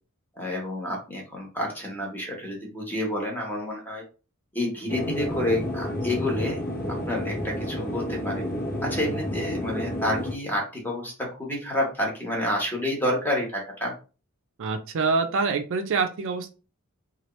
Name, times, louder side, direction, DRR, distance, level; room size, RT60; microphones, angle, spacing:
voice 1, 0.4-4.0 4.5-6.6 6.9-8.4 8.8-11.1 11.4-13.9, left 1 dB, 10° left, -1 dB, 1.1 m, -29 dB
sound 1, 4.9-10.3, left 1 dB, 45° left, 0.9 m, -30 dB
voice 2, 14.6-16.5, right 4 dB, 60° right, 7 dB, 0.4 m, -25 dB
3.0 x 2.4 x 3.0 m, 0.34 s
head